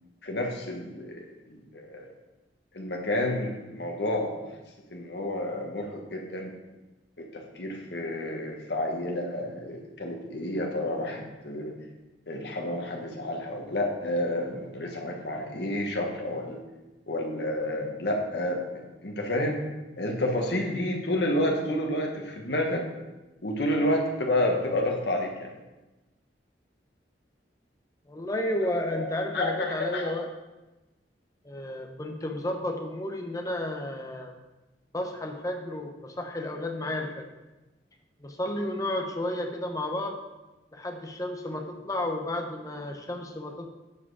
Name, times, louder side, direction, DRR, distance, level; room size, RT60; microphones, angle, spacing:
voice 1, 0.2-2.1 2.7-4.4 4.9-6.5 7.2-11.7 12.3-16.6 17.1-19.6 20.0-22.8 23.4-25.5 28.9-29.1 29.3-30.1, left 1 dB, 65° left, 1 dB, 1.4 m, -30 dB
voice 2, 28.1-30.3 31.4-34.3 34.9-37.3 38.2-40.2 40.7-43.7, left 1 dB, 20° left, 3 dB, 0.8 m, -32 dB
8.5 x 4.8 x 4.8 m, 1.1 s
head